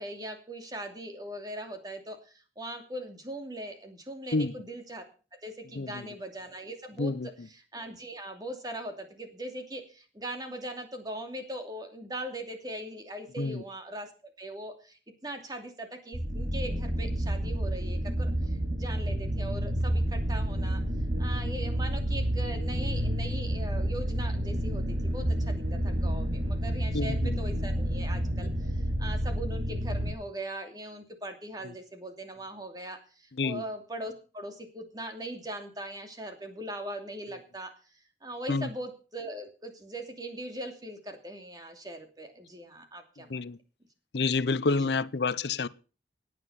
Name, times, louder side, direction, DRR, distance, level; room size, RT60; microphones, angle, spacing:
voice 1, 0.0-5.0 5.3-14.1 14.4-20.8 21.2-37.7 38.2-43.4 44.7-44.9, right 1 dB, 20° right, 2.8 m, -40 dB
sound 1, 16.1-30.1, equal, 45° right, 2.8 m, -30 dB
voice 2, 26.9-27.3 33.4-33.6 38.5-38.7 43.3-43.6 44.1-45.7, left 3 dB, 75° left, 0.7 m, -28 dB
17.5 x 9.5 x 5.7 m
head